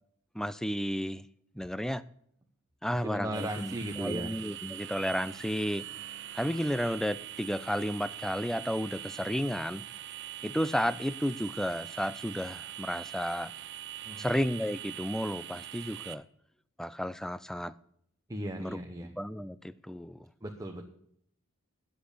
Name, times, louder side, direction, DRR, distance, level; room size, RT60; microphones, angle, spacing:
voice 1, 0.3-1.2 1.6-2.0 2.8-3.7 4.0-5.8 6.3-9.8 10.4-13.5 14.2-16.2 16.8-17.7 18.6-20.2, equal, ahead, 16 dB, 0.3 m, -32 dB
voice 2, 3.0-4.3 14.0-14.3 18.3-19.1 20.4-20.8, right 1 dB, 15° right, 2 dB, 1.0 m, -37 dB
sound 1, 3.3-16.1, right 12 dB, 55° right, 0.7 m, -43 dB
10.0 x 7.9 x 6.7 m, 0.70 s
head